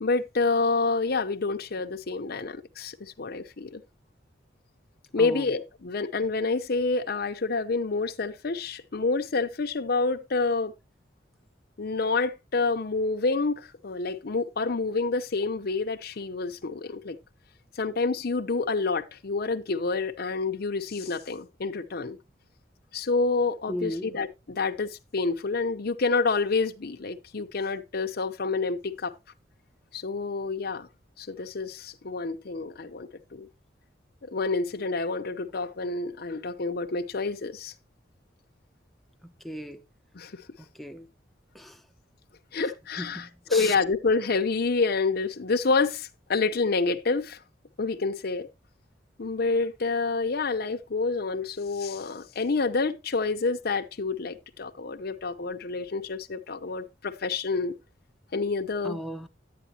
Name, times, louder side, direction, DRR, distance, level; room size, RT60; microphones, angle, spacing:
voice 1, 0.0-3.8 5.1-10.7 11.8-17.2 17.8-22.2 22.9-29.1 29.9-30.9 31.2-33.5 34.2-37.7 40.1-40.4 42.5-47.4 47.8-48.5 49.2-57.7 58.3-59.0, left 3 dB, 55° left, 0.7 m, -28 dB
voice 2, 5.2-5.5 23.7-24.1 39.2-39.8 40.7-41.1 41.5-41.8 43.0-43.7 58.8-59.3, equal, ahead, 0.7 m, -36 dB
10.0 x 9.0 x 2.7 m
head